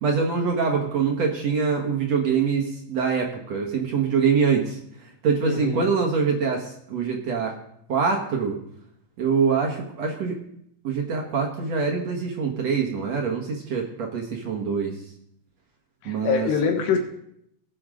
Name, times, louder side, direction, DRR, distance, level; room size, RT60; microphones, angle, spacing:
voice 1, 0.0-4.8 5.2-7.5 7.9-8.6 9.2-10.3 10.8-14.9 16.0-16.5, right 5 dB, 60° right, 0 dB, 1.9 m, -24 dB
voice 2, 5.4-5.9 16.0-17.0, left 6 dB, 80° left, 4 dB, 3.7 m, -24 dB
20.0 x 8.0 x 3.8 m, 0.73 s
omnidirectional pair, 4.9 m